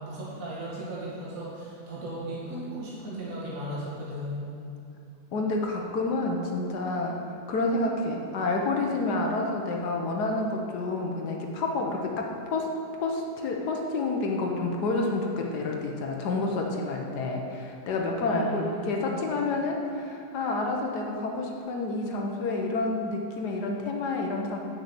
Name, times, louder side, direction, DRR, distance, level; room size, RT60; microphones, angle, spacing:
voice 1, 0.0-4.6 18.3-19.3, right 1 dB, 55° right, -7 dB, 2.5 m, -36 dB
voice 2, 5.3-24.6, left 2 dB, 80° left, 1 dB, 1.5 m, -29 dB
7.5 x 6.7 x 8.0 m, 2.4 s
omnidirectional pair, 1.7 m